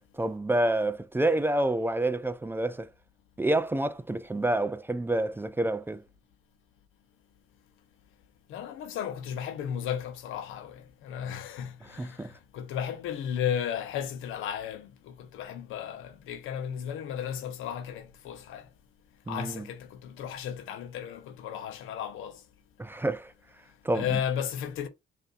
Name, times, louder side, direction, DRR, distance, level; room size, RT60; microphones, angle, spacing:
voice 1, 0.1-2.9 3.4-6.0 11.8-12.3 19.3-19.7 22.8-23.3 23.8-24.2, right 1 dB, 10° right, 0.3 m, -28 dB
voice 2, 8.5-18.7 19.3-22.4 23.9-24.9, left 9 dB, 90° left, 0.8 m, -34 dB
5.4 x 2.6 x 2.5 m
cardioid pair, 90°, 20 cm